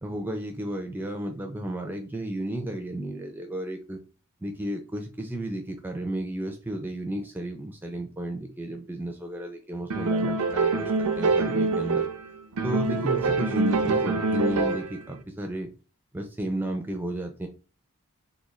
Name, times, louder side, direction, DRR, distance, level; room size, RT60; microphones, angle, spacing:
voice 1, 0.0-4.0 4.4-12.0 12.6-15.7 16.1-17.5, right 1 dB, 10° right, 4 dB, 0.4 m, -33 dB
sound 1, 9.9-12.2 12.6-15.0, right 3 dB, 90° right, 0.5 m, -25 dB
3.6 x 2.3 x 3.0 m, 0.34 s
head